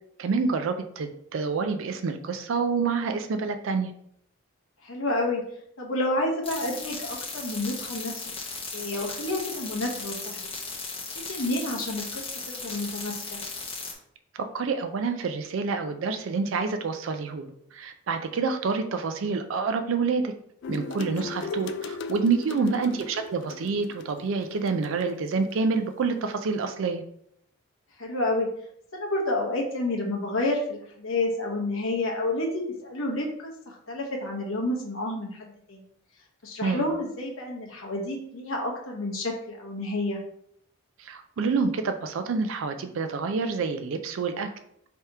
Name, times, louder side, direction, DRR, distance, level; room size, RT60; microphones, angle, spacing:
voice 1, 0.2-3.9 14.3-20.3 20.7-27.0 36.6-36.9 41.0-44.5, right 4 dB, 70° right, 7 dB, 0.4 m, -28 dB
voice 2, 4.8-5.4 5.8-8.1 8.7-10.5 11.1-13.4 22.5-23.0 28.0-28.5 28.9-35.8 36.4-40.2, left 2 dB, 80° left, -1 dB, 1.2 m, -30 dB
sound 1, 6.4-13.9, left 4 dB, 25° left, 0.8 m, -36 dB
sound 2, 20.6-25.6, left 4 dB, 55° left, 0.3 m, -38 dB
3.3 x 2.9 x 4.7 m, 0.69 s
head